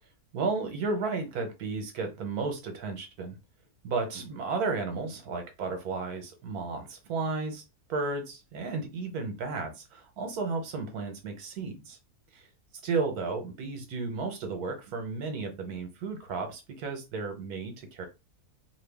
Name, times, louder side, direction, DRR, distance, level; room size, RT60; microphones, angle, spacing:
voice 1, 0.3-3.4 3.8-7.6 7.9-12.0 12.3-12.4 12.8-18.1, right 4 dB, 75° right, 5 dB, 1.3 m, -33 dB
2.9 x 2.3 x 3.4 m, 0.26 s
omnidirectional pair, 1.7 m